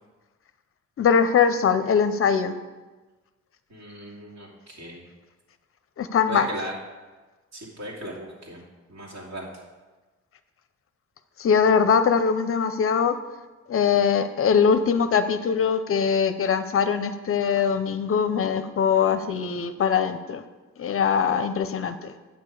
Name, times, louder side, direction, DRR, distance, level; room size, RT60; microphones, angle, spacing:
voice 1, 1.0-2.5 6.0-6.5 11.4-13.1 13.7-20.4 20.8-21.9, left 6 dB, 45° left, 10 dB, 0.6 m, -22 dB
voice 2, 3.7-5.0 6.3-6.7 7.5-8.6 8.9-9.4, right 1 dB, 60° right, -3 dB, 2.7 m, -37 dB
9.2 x 6.7 x 4.8 m, 1.2 s
cardioid pair, 90°, 30 cm